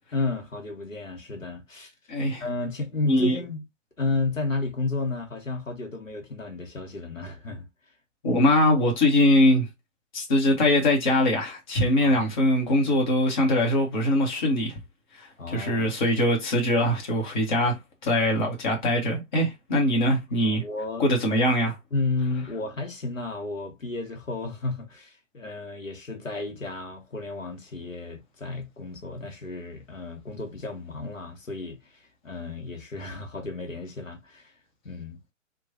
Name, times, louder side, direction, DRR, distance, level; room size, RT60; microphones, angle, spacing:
voice 1, 0.1-1.9 2.4-3.6 4.0-7.7 12.0-12.3 15.4-15.9 20.4-21.1 21.9-34.5 34.8-35.2, left 3 dB, 85° left, 0.9 m, -32 dB
voice 2, 2.1-2.4 3.0-3.4 8.2-9.7 10.1-14.8 15.1-20.6 21.0-21.8, left 1 dB, 40° left, 1.0 m, -22 dB
2.9 x 2.2 x 2.6 m
figure-of-eight pair, 125°, 38 cm